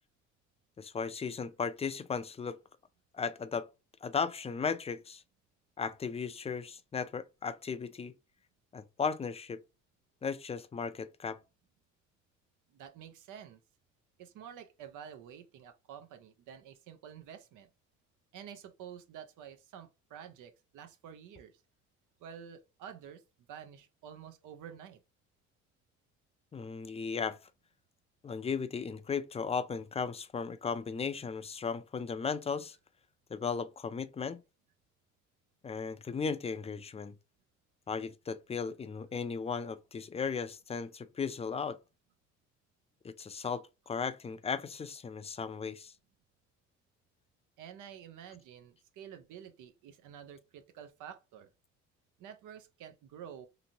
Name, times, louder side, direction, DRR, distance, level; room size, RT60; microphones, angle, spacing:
voice 1, 0.8-2.6 3.1-3.7 4.0-5.2 5.8-8.1 8.7-9.6 10.2-11.4 26.5-27.4 28.2-32.8 33.3-34.4 35.6-37.1 37.9-41.8 43.0-45.9, left 5 dB, 20° left, 0.3 m, -36 dB
voice 2, 12.7-13.6 14.2-17.7 18.3-21.6 22.2-23.2 23.5-25.0 47.6-51.5 52.2-53.5, right 8 dB, 85° right, 0.6 m, -49 dB
2.9 x 2.6 x 2.6 m
cardioid pair, 90°, 30 cm